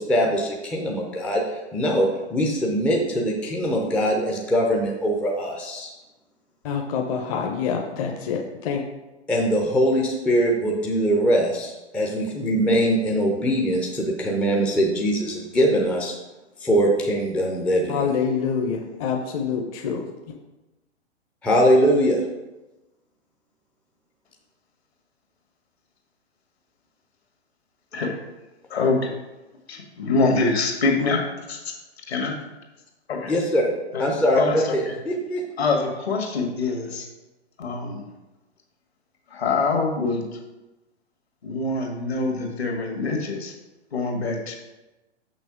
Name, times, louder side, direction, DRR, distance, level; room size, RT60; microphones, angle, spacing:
voice 1, 0.0-5.9 9.3-11.5 11.9-16.1 16.6-18.0 21.4-22.2 33.3-33.7 34.0-35.4, equal, 5° left, -1 dB, 0.5 m, -22 dB
voice 2, 6.6-8.9 17.9-20.1, left 6 dB, 30° left, 2 dB, 0.8 m, -26 dB
voice 3, 28.7-29.1 29.7-31.2 31.5-31.6 32.1-32.4 33.1-33.3 33.9-34.0 34.4-35.0 35.6-37.1 37.6-38.1 39.3-40.2 41.4-43.5 43.9-44.6, left 3 dB, 65° left, 2 dB, 1.9 m, -24 dB
6.7 x 6.1 x 5.0 m, 1.1 s
figure-of-eight pair, 110°, 34 cm